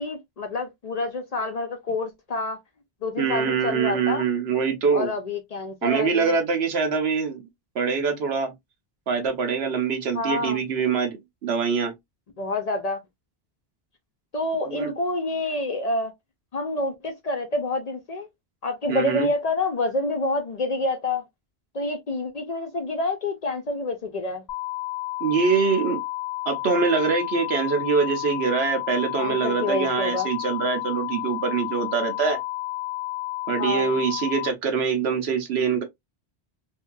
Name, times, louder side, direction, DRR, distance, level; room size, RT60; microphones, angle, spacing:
voice 1, 0.0-2.6 3.0-4.3 4.9-6.3 10.1-10.6 12.4-13.0 14.3-16.1 16.5-18.3 18.6-21.2 21.7-24.4 29.2-30.3 33.6-33.9, left 2 dB, 50° left, 0.5 m, -27 dB
voice 2, 3.2-5.1 5.8-7.4 7.7-8.5 9.1-11.9 14.7-14.9 18.9-19.3 25.2-26.0 26.5-32.4 33.5-35.8, right 5 dB, 80° right, 1.1 m, -24 dB
sound 1, 24.5-34.5, left 19 dB, 90° left, 0.8 m, -31 dB
2.8 x 2.7 x 2.3 m
omnidirectional pair, 1.1 m